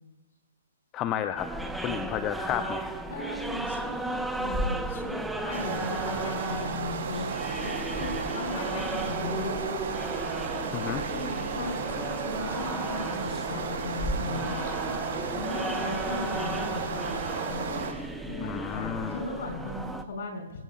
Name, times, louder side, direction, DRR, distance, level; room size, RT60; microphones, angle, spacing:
voice 1, 0.9-1.5 1.8-2.9 10.7-11.0 18.4-19.2, left 10 dB, 25° left, 11 dB, 0.6 m, -32 dB
sound 1, 1.4-20.0, right 1 dB, 5° right, 1.0 m, -35 dB
voice 2, 3.1-9.6 10.8-15.0 15.3-17.9 18.2-20.6, left 3 dB, 55° left, 2 dB, 5.4 m, -38 dB
sound 2, 5.5-17.9, right 5 dB, 45° right, 6.4 m, -33 dB
24.0 x 16.5 x 2.4 m, 1.1 s
figure-of-eight pair, 125°, 0 cm